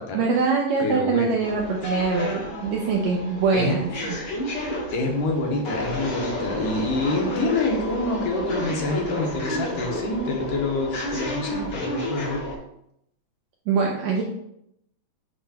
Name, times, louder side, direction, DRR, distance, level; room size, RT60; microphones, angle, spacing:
voice 1, 0.1-4.2 13.7-14.2, right 4 dB, 80° right, -1 dB, 1.6 m, -23 dB
voice 2, 0.8-1.3 3.5-3.8 4.9-12.4, left 2 dB, 75° left, 1 dB, 2.5 m, -26 dB
sound 1, 1.4-12.6, left 1 dB, 55° left, 2.8 m, -31 dB
8.2 x 3.0 x 4.2 m, 0.76 s
omnidirectional pair, 3.9 m